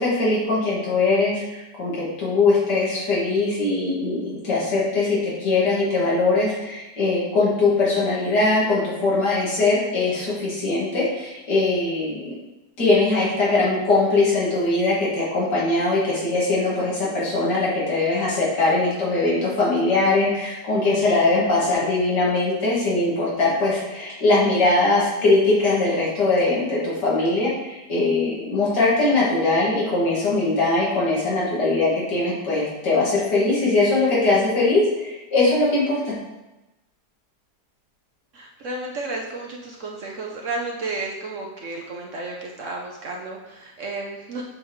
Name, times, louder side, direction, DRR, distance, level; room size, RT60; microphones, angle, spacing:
voice 1, 0.0-12.4 12.8-36.1, left 3 dB, 75° left, -7 dB, 2.7 m, -21 dB
voice 2, 38.3-44.4, right 3 dB, 60° right, -1 dB, 0.9 m, -32 dB
7.0 x 5.2 x 3.1 m, 1.0 s
omnidirectional pair, 1.8 m